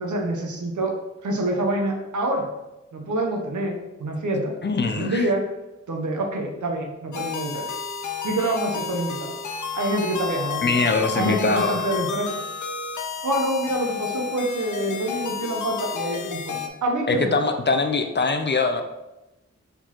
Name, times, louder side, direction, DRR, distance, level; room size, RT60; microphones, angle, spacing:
voice 1, 0.0-2.5 2.9-4.5 4.8-5.4 5.9-7.7 8.2-9.4 9.7-10.8 11.1-12.4 13.2-17.5, right 1 dB, 85° right, 1 dB, 0.8 m, -26 dB
voice 2, 4.6-5.3 10.6-11.8 17.1-18.8, left 3 dB, 40° left, 6 dB, 0.4 m, -22 dB
sound 1, 7.1-16.7, left 7 dB, 90° left, 0.5 m, -31 dB
4.4 x 3.9 x 2.9 m, 0.98 s
wide cardioid pair, 85°, 29 cm